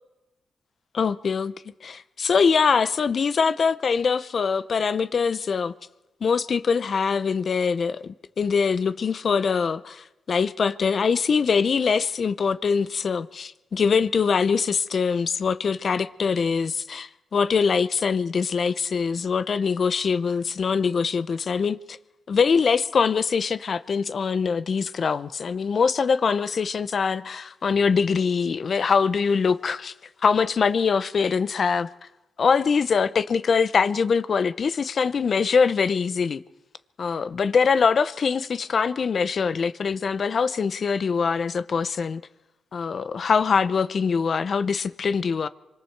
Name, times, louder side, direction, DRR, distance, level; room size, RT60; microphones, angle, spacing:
voice 1, 0.9-1.5 1.8-5.7 6.2-22.0 22.3-29.9 30.2-31.9 32.4-36.4 37.0-42.2 42.7-45.5, left 5 dB, 55° left, 0.7 m, -23 dB
25.5 x 24.5 x 4.7 m
cardioid pair, 75°, 0 cm